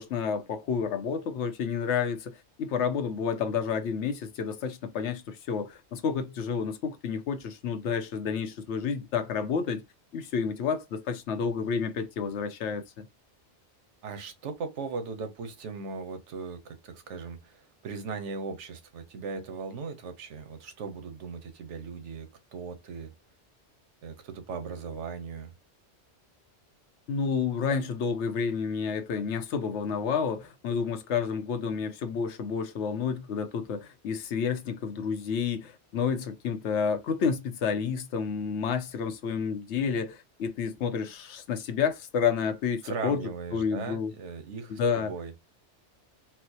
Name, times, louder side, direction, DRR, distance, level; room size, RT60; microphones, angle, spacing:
voice 1, 0.0-2.3 2.6-9.8 10.1-13.1 27.1-43.2 43.5-44.1 44.7-45.1, left 6 dB, 75° left, 0.9 m, -30 dB
voice 2, 14.0-23.1 24.0-25.5 42.8-45.3, right 5 dB, 80° right, 1.1 m, -38 dB
4.4 x 2.1 x 2.7 m
omnidirectional pair, 1.2 m